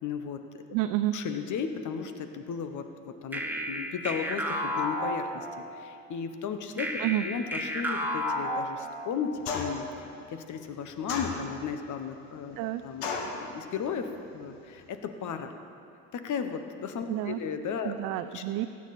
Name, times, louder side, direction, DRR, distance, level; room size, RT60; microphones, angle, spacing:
voice 1, 0.0-0.6 1.1-3.4 3.7-5.5 5.7-12.6 12.8-15.5 16.1-17.9 18.3-18.4, left 6 dB, 50° left, 8 dB, 1.2 m, -35 dB
voice 2, 0.7-1.2 7.0-7.2 12.6-12.8 17.1-17.4 17.8-18.7, right 15 dB, 60° right, 9 dB, 0.5 m, -29 dB
sound 1, 3.3-5.8 6.8-9.3, equal, 5° right, 1.3 m, -32 dB
sound 2, 9.4-9.9 11.1-11.8 13.0-13.4, left 4 dB, 80° left, 1.5 m, -33 dB
15.5 x 9.9 x 4.3 m, 2.6 s
hypercardioid pair, 65°, 38 cm